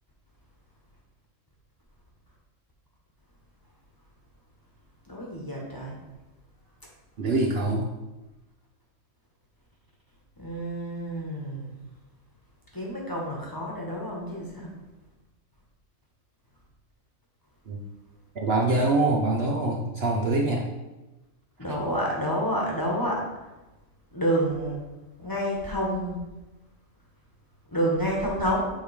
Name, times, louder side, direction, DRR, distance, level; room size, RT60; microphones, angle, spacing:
voice 1, 5.1-6.0 10.4-11.7 12.7-14.7 21.6-23.2 24.1-24.8 25.2-26.2 27.7-28.7, equal, 15° left, -3 dB, 1.3 m, -28 dB
voice 2, 7.2-7.9 17.7-17.8 18.3-20.7 21.7-21.8, right 2 dB, 55° right, -1 dB, 0.9 m, -24 dB
8.0 x 3.4 x 4.8 m, 1.1 s
omnidirectional pair, 1.4 m